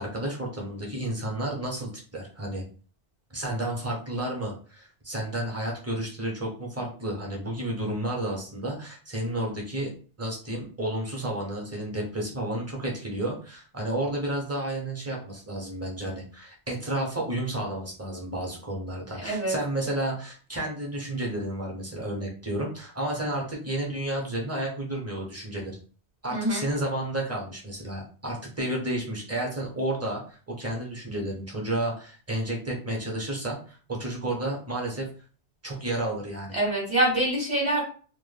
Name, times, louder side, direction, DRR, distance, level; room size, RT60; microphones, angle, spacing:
voice 1, 0.0-2.6 3.3-9.9 10.2-25.8 26.2-35.1 35.6-36.6, right 1 dB, 20° right, -1 dB, 0.4 m, -31 dB
voice 2, 19.2-19.5 26.3-26.6 36.5-37.8, right 1 dB, 45° right, -5 dB, 0.8 m, -25 dB
2.1 x 2.1 x 3.2 m, 0.40 s
omnidirectional pair, 1.1 m